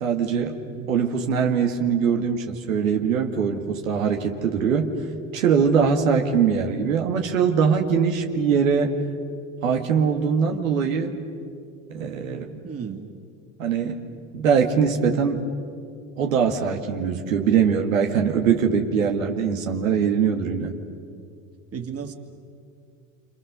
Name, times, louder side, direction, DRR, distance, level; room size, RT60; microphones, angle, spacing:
voice 1, 0.0-0.6 0.9-5.0 5.3-9.0 9.6-11.2 11.9-12.6 13.6-14.0 14.3-15.5 16.2-20.7, right 6 dB, 90° right, 3 dB, 2.0 m, -22 dB
voice 2, 0.6-1.0 12.6-13.1 21.7-22.1, right 7 dB, 35° right, 4 dB, 2.7 m, -34 dB
28.0 x 27.0 x 6.8 m, 2.4 s
hypercardioid pair, 85°, 39 cm